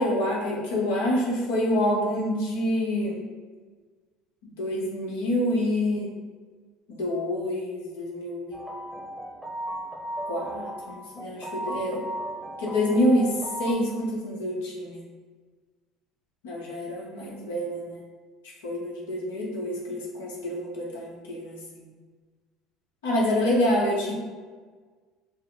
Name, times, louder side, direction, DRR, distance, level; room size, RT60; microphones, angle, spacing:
voice 1, 0.0-3.2 4.6-6.1 6.9-8.6 10.2-12.0 12.6-13.3 13.6-15.0 16.4-18.0 18.6-21.8 23.0-24.1, left 1 dB, 90° left, -3 dB, 1.0 m, -27 dB
sound 1, 8.5-13.7, right 1 dB, ahead, 0.7 m, -36 dB
5.4 x 2.1 x 3.9 m, 1.5 s
supercardioid pair, 85°, 0 cm